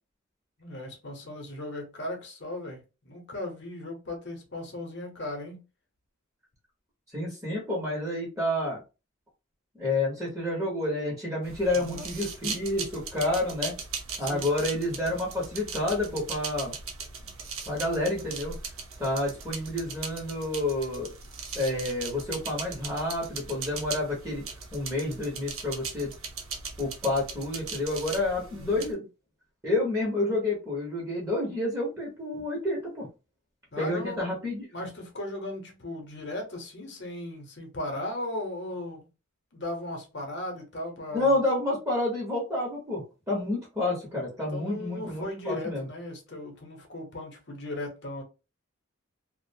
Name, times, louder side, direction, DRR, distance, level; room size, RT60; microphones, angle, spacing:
voice 1, 0.6-5.6 11.7-12.1 14.2-14.5 28.5-28.8 32.3-32.4 33.7-34.2 34.7-39.1 39.5-41.4 44.5-48.2, left 1 dB, 55° left, 0.9 m, -37 dB
voice 2, 7.1-8.8 9.8-13.7 14.2-16.7 17.7-18.5 19.0-21.1 21.5-24.4 24.7-26.1 26.8-29.1 29.6-33.1 33.8-34.7 41.1-45.9, left 2 dB, 15° right, 0.8 m, -29 dB
sound 1, 11.4-28.9, right 5 dB, 80° right, 0.6 m, -39 dB
2.4 x 2.1 x 2.6 m
head